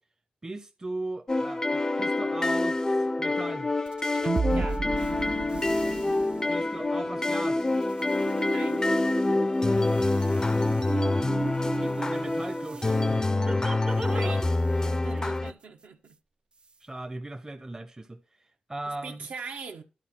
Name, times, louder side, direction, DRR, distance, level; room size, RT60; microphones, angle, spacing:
voice 1, 0.4-3.7 6.5-7.7 11.8-14.4 14.9-15.3 16.8-19.3, right 2 dB, 20° right, 0.7 m, -38 dB
sound 1, 1.3-15.5, left 2 dB, 25° left, 0.4 m, -26 dB
sound 2, 3.9-14.4, right 4 dB, 40° right, 0.3 m, -35 dB
voice 2, 4.5-4.8 8.5-8.8 14.1-14.5 14.8-16.2 18.9-19.8, right 5 dB, 75° right, 1.3 m, -41 dB
11.5 x 4.0 x 6.0 m
cardioid pair, 65°, 3 cm